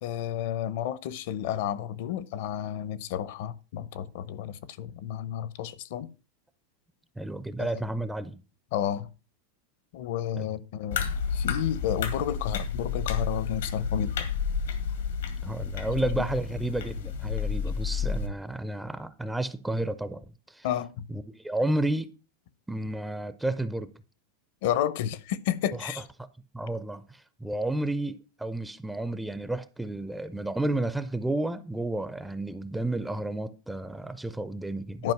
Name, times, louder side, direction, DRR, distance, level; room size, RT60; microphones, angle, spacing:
voice 1, 0.0-6.1 7.6-7.7 8.7-9.1 9.9-14.3 20.6-21.0 24.6-26.0 35.0-35.1, left 10 dB, 60° left, 0.7 m, -31 dB
voice 2, 7.2-8.4 10.4-10.5 15.4-20.7 21.1-22.1 22.7-23.9 25.7-25.9 26.5-35.1, right 1 dB, 5° right, 0.4 m, -31 dB
sound 1, 10.9-18.3, left 6 dB, 90° left, 2.1 m, -31 dB
11.0 x 5.0 x 5.9 m
supercardioid pair, 165°, 0 cm